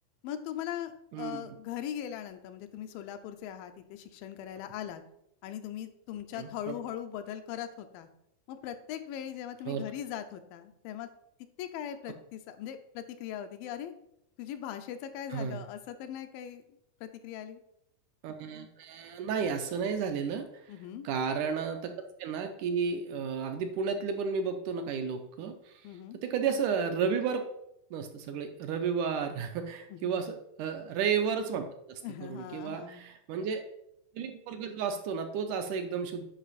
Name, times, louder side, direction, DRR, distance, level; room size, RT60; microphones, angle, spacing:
voice 1, 0.2-5.0 5.4-8.1 8.5-11.1 11.6-13.9 14.4-16.6 17.0-17.6 20.7-21.1 25.8-26.2 29.9-30.2 32.0-33.0, left 10 dB, 90° left, 9 dB, 2.5 m, -40 dB
voice 2, 6.3-6.7 9.7-9.8 15.3-15.6 18.2-20.6 21.0-21.9 22.2-27.4 27.9-32.0 32.3-33.6 34.1-36.3, right 6 dB, 75° right, 6 dB, 2.0 m, -32 dB
10.0 x 5.4 x 4.1 m, 0.77 s
omnidirectional pair, 3.9 m